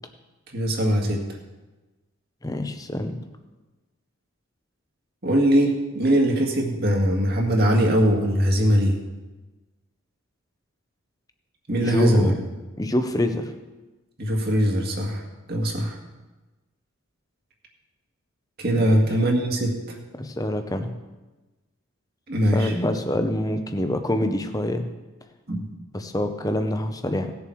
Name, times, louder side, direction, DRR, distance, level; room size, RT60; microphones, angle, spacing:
voice 1, 0.5-1.2 5.2-8.9 11.7-12.4 14.2-15.2 15.5-16.0 18.6-20.0 22.3-22.7 25.5-25.7, equal, 45° right, 0 dB, 2.0 m, -21 dB
voice 2, 2.4-3.2 11.8-12.3 12.8-13.5 18.8-19.0 20.2-20.9 22.5-24.8 25.9-27.3, left 1 dB, 15° left, 7 dB, 0.8 m, -25 dB
18.0 x 7.1 x 4.7 m, 1.2 s
head